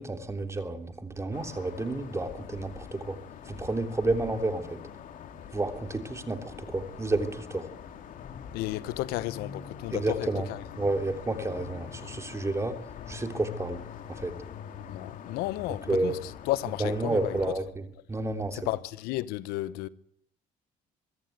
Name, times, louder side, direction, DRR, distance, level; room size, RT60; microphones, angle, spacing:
voice 1, 0.0-3.2 3.5-4.8 5.5-7.7 9.9-10.4 10.8-12.8 13.1-13.8 14.1-14.3 15.9-16.1 16.8-18.6, right 2 dB, 20° right, 3.2 m, -30 dB
sound 1, 1.3-17.5, left 8 dB, 60° left, 2.8 m, -44 dB
voice 2, 8.5-10.6 14.7-17.4 18.5-19.9, left 16 dB, 85° left, 0.9 m, -33 dB
24.0 x 14.0 x 9.3 m
cardioid pair, 90°, 15 cm